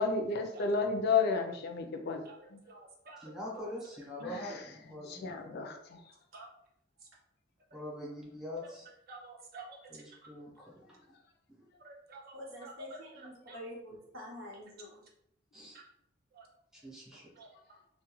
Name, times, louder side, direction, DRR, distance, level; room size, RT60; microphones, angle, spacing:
voice 1, 0.0-2.2 2.5-2.6 4.2-6.0, left 4 dB, 55° left, 4 dB, 0.4 m, -32 dB
voice 2, 2.7-3.3 3.5-3.6 6.3-6.5 8.6-8.7 9.1-9.8 11.8-13.0 13.5-13.6 16.4-16.5 17.4-17.5, right 2 dB, 50° right, 0 dB, 0.5 m, -49 dB
voice 3, 3.2-5.6 7.7-8.9 9.9-11.0 15.5-15.8 16.8-17.3, left 1 dB, 5° right, -5 dB, 0.7 m, -44 dB
voice 4, 12.3-15.0, equal, 85° right, -3 dB, 0.8 m, -47 dB
2.3 x 2.1 x 2.9 m, 0.76 s
head